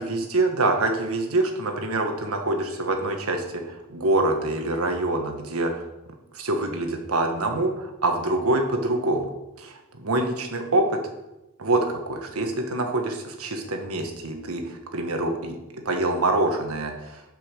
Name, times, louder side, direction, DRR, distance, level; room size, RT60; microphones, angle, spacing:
voice 1, 0.0-5.8 6.3-9.3 9.6-11.0 11.6-17.2, right 2 dB, 75° right, 3 dB, 1.4 m, -25 dB
8.0 x 5.6 x 6.6 m, 0.97 s
head